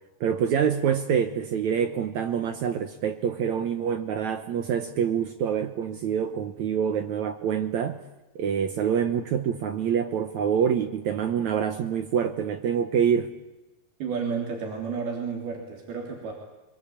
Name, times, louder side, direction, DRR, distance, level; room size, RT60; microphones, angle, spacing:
voice 1, 0.2-8.0 8.4-13.3, right 8 dB, 65° right, 8 dB, 2.0 m, -26 dB
voice 2, 14.0-16.3, right 5 dB, 90° right, 0 dB, 5.2 m, -31 dB
23.5 x 23.5 x 8.7 m, 1.0 s
omnidirectional pair, 4.2 m